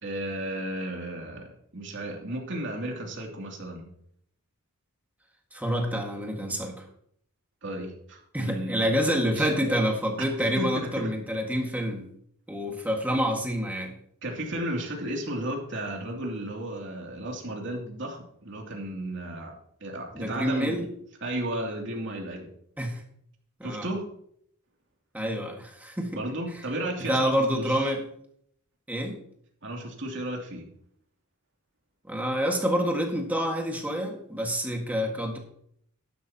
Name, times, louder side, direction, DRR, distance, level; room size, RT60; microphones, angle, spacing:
voice 1, 0.0-3.9 7.6-8.9 9.4-9.7 10.6-11.1 14.2-20.8 21.2-22.5 23.6-24.0 26.1-27.9 29.6-30.7, right 1 dB, 55° right, 0 dB, 2.7 m, -34 dB
voice 2, 5.5-6.8 8.3-12.1 12.5-13.9 20.1-20.9 22.8-23.0 23.6-23.9 25.1-26.2 27.1-28.0 28.9-29.2 32.1-35.4, equal, 5° right, 1 dB, 1.7 m, -27 dB
12.0 x 11.0 x 2.9 m, 0.68 s
head